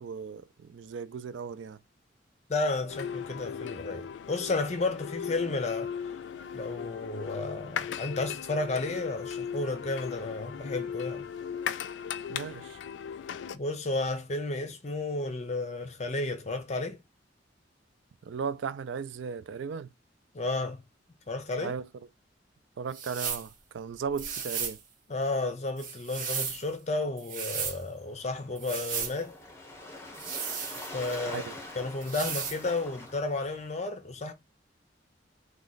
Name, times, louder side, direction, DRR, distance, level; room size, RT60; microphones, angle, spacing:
voice 1, 0.0-1.8 12.3-12.8 18.2-19.9 21.6-21.9 22.8-24.8 31.3-31.5, right 6 dB, 75° right, 0.4 m, -36 dB
voice 2, 2.5-5.9 6.5-11.2 13.5-17.0 20.3-20.8 21.3-21.7 25.1-29.4 30.9-31.4 31.7-34.3, left 2 dB, 35° left, 0.6 m, -32 dB
sound 1, 2.9-13.6, left 7 dB, 75° left, 0.3 m, -37 dB
sound 2, 22.9-23.5 24.2-24.8 25.8-26.6 27.2-27.8 28.6-29.2 30.1-31.2 32.0-32.6, right 6 dB, 45° right, 0.8 m, -35 dB
Waves surf, 28.0-33.7, left 2 dB, 15° left, 0.9 m, -45 dB
3.1 x 2.3 x 3.8 m
head